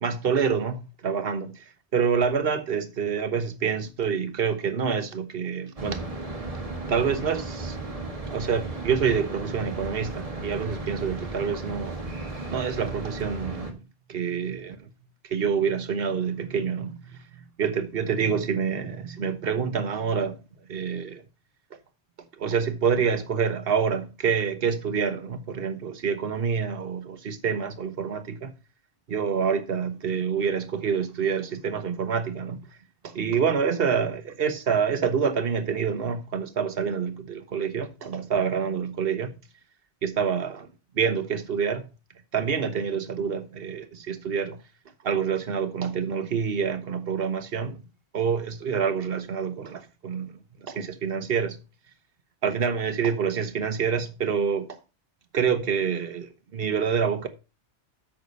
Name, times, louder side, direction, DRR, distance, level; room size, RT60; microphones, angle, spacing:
voice 1, 0.0-1.6 1.9-6.1 6.9-7.8 8.3-12.0 12.5-13.8 14.1-14.9 15.2-17.2 17.6-20.4 20.7-21.2 22.4-28.5 29.1-32.6 33.0-39.3 40.0-40.7 40.9-41.9 42.3-44.6 45.0-47.8 48.1-50.3 50.6-51.6 52.4-54.7 55.3-57.3, right 6 dB, 55° right, 1.2 m, -27 dB
sound 1, 5.8-13.7, right 2 dB, 30° right, 1.7 m, -35 dB
8.3 x 6.0 x 5.3 m
omnidirectional pair, 1.2 m